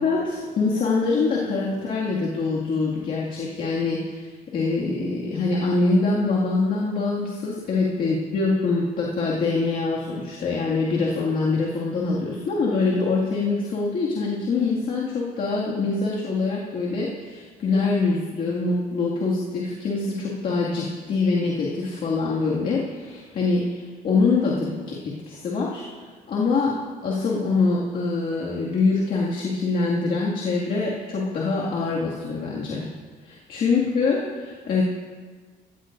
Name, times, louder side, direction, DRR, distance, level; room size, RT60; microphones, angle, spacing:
voice 1, 0.0-25.8 26.3-26.8 27.0-32.9 33.2-34.8, left 3 dB, 55° left, -5 dB, 2.1 m, -24 dB
16.5 x 13.5 x 2.6 m, 1.5 s
cardioid pair, 110°, 17 cm